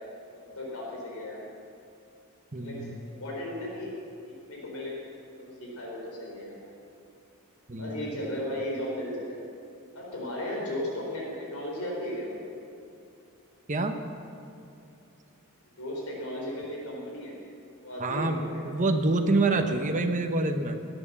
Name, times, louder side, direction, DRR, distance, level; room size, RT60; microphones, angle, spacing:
voice 1, 0.3-1.4 2.5-3.9 4.2-5.0 5.3-6.6 7.8-9.4 9.9-12.3 15.8-17.3 17.8-18.7, left 1 dB, 75° left, -3 dB, 4.1 m, -35 dB
voice 2, 2.5-3.0 7.7-8.1 13.7-13.9 18.0-20.8, right 2 dB, 35° right, 5 dB, 1.0 m, -27 dB
18.0 x 9.0 x 7.2 m, 2.6 s
head